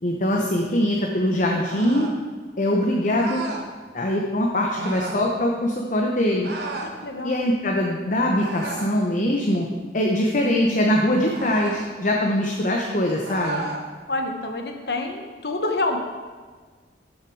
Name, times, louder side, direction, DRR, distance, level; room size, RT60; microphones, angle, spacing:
voice 1, 0.0-2.1 2.6-3.4 3.9-6.5 7.2-9.7 9.9-13.6, left 1 dB, 45° left, 0 dB, 1.0 m, -22 dB
sound 1, 1.6-2.2 3.1-3.7 4.7-5.2 6.4-7.0 8.4-9.0 11.3-11.9 13.2-13.9, right 2 dB, 65° right, 1.3 m, -33 dB
voice 2, 6.8-7.4 14.1-16.0, left 2 dB, 65° left, 4 dB, 1.3 m, -27 dB
13.5 x 6.5 x 4.8 m, 1.5 s
head